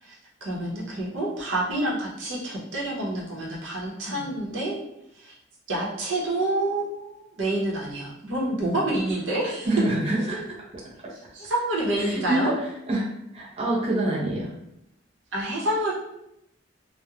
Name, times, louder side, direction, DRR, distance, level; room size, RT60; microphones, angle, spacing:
voice 1, 0.0-4.8 5.1-5.3 5.7-9.7 11.3-12.5 15.3-15.9, right 1 dB, 80° right, -5 dB, 0.8 m, -28 dB
voice 2, 9.6-10.6 12.0-13.1 13.3-14.5, right 1 dB, 35° right, -6 dB, 0.6 m, -26 dB
3.0 x 2.1 x 2.3 m, 0.81 s
head